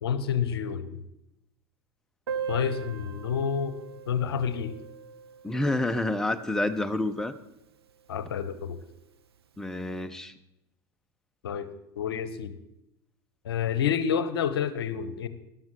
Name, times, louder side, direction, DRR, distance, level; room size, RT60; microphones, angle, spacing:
voice 1, 0.0-1.0 2.5-3.8 4.1-4.7 8.1-8.8 11.4-12.6 13.4-15.3, left 7 dB, 65° left, 13 dB, 0.8 m, -29 dB
Piano, 2.3-7.6 7.9-8.0 8.2-8.4 8.7-8.8 9.5-9.7, right 6 dB, 75° right, 0.9 m, -40 dB
voice 2, 5.4-7.3 9.6-10.3, left 2 dB, 5° left, 10 dB, 0.6 m, -28 dB
13.5 x 11.5 x 3.8 m, 0.87 s
figure-of-eight pair, 75°, 13 cm